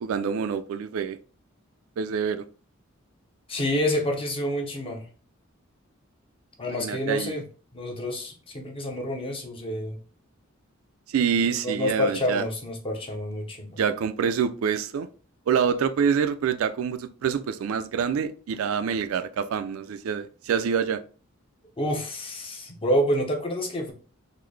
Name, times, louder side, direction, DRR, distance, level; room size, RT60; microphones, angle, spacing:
voice 1, 0.0-1.2 2.0-2.4 6.8-7.4 11.1-12.4 13.8-15.1 15.5-21.0, right 7 dB, 80° right, 0.3 m, -26 dB
voice 2, 3.5-5.1 6.6-7.4 7.7-10.0 11.6-13.8 21.8-23.9, equal, 25° left, 0.6 m, -28 dB
3.8 x 2.0 x 3.2 m
head